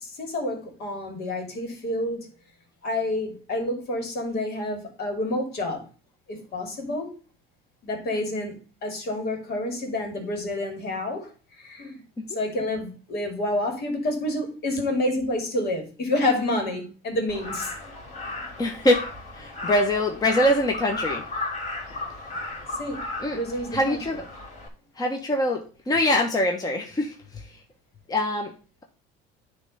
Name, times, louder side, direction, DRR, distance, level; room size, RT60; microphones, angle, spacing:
voice 1, 0.0-2.3 2.8-5.8 6.3-7.2 7.8-8.5 8.8-11.3 11.6-12.0 12.3-17.7 22.8-23.0 23.3-24.0, left 1 dB, 55° left, 2.8 m, -28 dB
Crow, 17.3-24.7, left 2 dB, 40° left, 3.4 m, -35 dB
voice 2, 18.6-19.0 19.3-21.2 23.2-23.4 23.7-24.2 25.0-27.4 28.1-28.5, left 1 dB, 20° left, 1.1 m, -24 dB
9.8 x 3.4 x 5.5 m
supercardioid pair, 110°, 19 cm